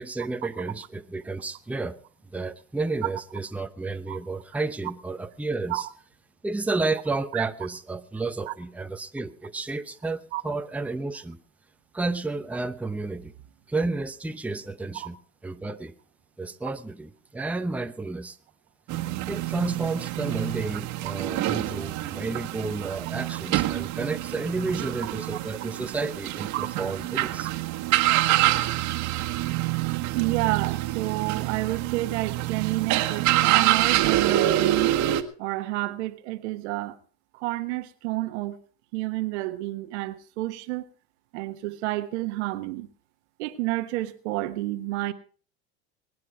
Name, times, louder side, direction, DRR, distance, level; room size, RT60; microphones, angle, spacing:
voice 1, 0.0-2.0 2.3-5.9 6.4-11.4 11.9-13.3 13.7-15.2 15.4-15.9 16.4-18.4 19.3-27.5, right 3 dB, 5° right, 0.8 m, -31 dB
sound 1, 18.9-35.2, right 15 dB, 55° right, 1.6 m, -26 dB
voice 2, 30.1-35.0 35.4-37.0 37.3-38.6 38.9-40.9 41.3-42.9 43.4-45.1, right 18 dB, 75° right, 1.4 m, -29 dB
22.0 x 9.7 x 4.8 m
hypercardioid pair, 95°, 34 cm